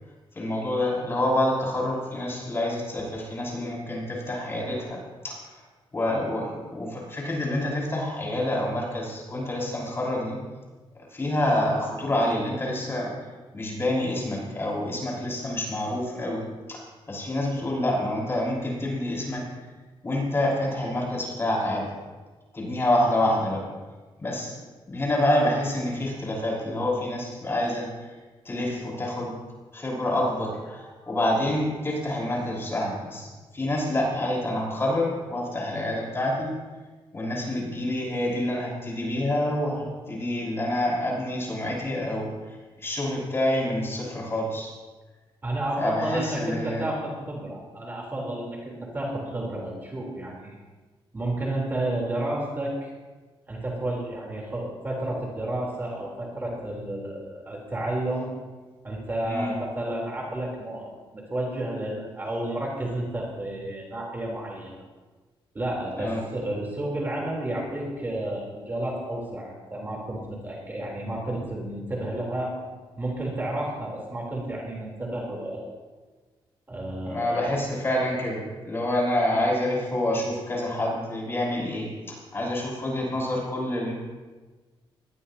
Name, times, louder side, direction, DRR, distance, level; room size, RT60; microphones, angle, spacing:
voice 1, 0.3-5.0 5.2-5.4 5.9-10.4 11.1-13.1 13.5-16.4 16.7-19.4 20.0-21.8 22.5-23.6 24.2-24.5 24.9-28.1 28.4-29.3 29.7-36.5 37.1-44.7 45.8-46.9 59.3-59.5 66.0-66.2 77.0-83.9, left 1 dB, 25° left, -3 dB, 6.0 m, -27 dB
voice 2, 45.4-50.6 51.1-52.9 53.5-58.3 58.8-64.7 65.5-72.5 73.0-75.7 76.7-77.5, right 1 dB, 20° right, -3 dB, 3.7 m, -31 dB
24.0 x 19.0 x 2.9 m, 1.3 s
wide cardioid pair, 155°, 9 cm